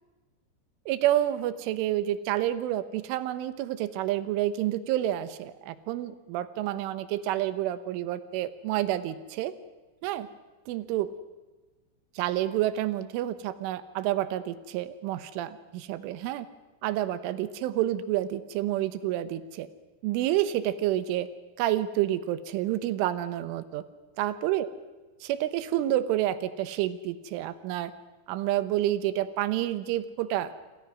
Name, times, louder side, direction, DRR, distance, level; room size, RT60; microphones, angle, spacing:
voice 1, 0.9-9.6 10.0-10.3 10.7-11.2 12.2-16.5 16.8-19.7 20.0-21.3 21.6-23.8 24.2-24.7 25.2-27.9 28.3-30.5, right 13 dB, 80° right, 13 dB, 3.5 m, -29 dB
27.0 x 27.0 x 6.2 m, 1.2 s
omnidirectional pair, 5.8 m